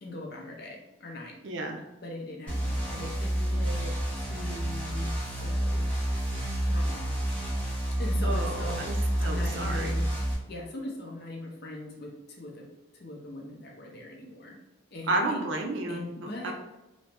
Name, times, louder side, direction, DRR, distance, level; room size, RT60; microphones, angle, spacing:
voice 1, 0.0-1.4 2.0-5.9 6.6-7.0 8.0-10.1 10.5-12.7 12.9-14.6 14.9-15.4 15.9-16.5, left 2 dB, 50° left, -1 dB, 0.6 m, -40 dB
voice 2, 1.4-1.8 8.2-8.9 9.2-9.9 15.1-16.5, right 2 dB, 65° right, 2 dB, 0.5 m, -31 dB
sound 1, 2.5-10.3, right 1 dB, 5° left, 1.3 m, -29 dB
2.9 x 2.7 x 3.3 m, 0.97 s
head